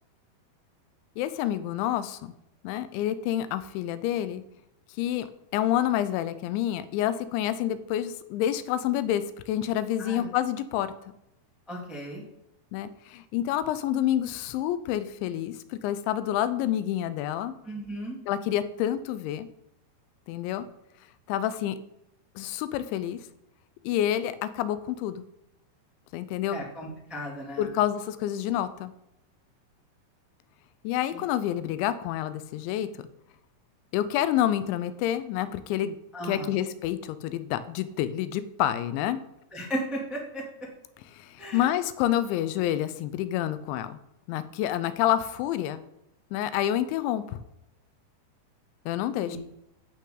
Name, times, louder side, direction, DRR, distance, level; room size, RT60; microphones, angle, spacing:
voice 1, 1.2-2.3 2.6-4.4 5.0-5.3 5.5-10.9 12.7-17.5 18.3-19.5 20.3-20.7 21.3-21.8 22.4-23.2 23.8-25.2 26.1-26.6 27.6-28.9 30.8-32.9 33.9-36.0 36.2-39.2 41.1-44.0 44.3-45.8 46.3-47.4 48.9-49.4, left 11 dB, 85° left, 13 dB, 3.0 m, -28 dB
voice 2, 11.7-12.2 17.6-18.2 26.5-27.7 31.1-31.2 36.1-36.5 39.5-40.4 41.4-41.7 49.3-49.4, equal, ahead, -4 dB, 0.9 m, -35 dB
11.5 x 8.4 x 3.9 m, 0.83 s
omnidirectional pair, 5.2 m